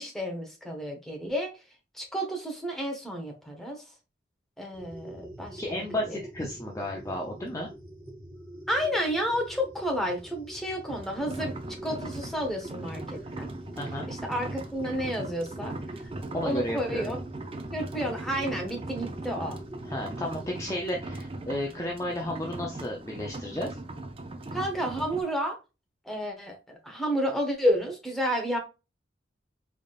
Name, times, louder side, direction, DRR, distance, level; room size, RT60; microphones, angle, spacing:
voice 1, 0.0-1.5 1.9-3.8 4.6-6.2 8.7-13.5 14.1-15.7 16.3-17.2 17.7-19.6 24.5-25.6 26.0-28.6, equal, ahead, 1 dB, 1.0 m, -31 dB
sound 1, 4.7-20.7, right 1 dB, 55° right, 1.7 m, -45 dB
voice 2, 5.6-7.7 13.8-14.1 16.3-17.0 19.8-23.8, left 1 dB, 15° left, 0 dB, 0.5 m, -33 dB
sound 2, 10.9-25.2, right 2 dB, 30° right, 0.5 m, -39 dB
3.9 x 3.5 x 2.4 m, 0.28 s
head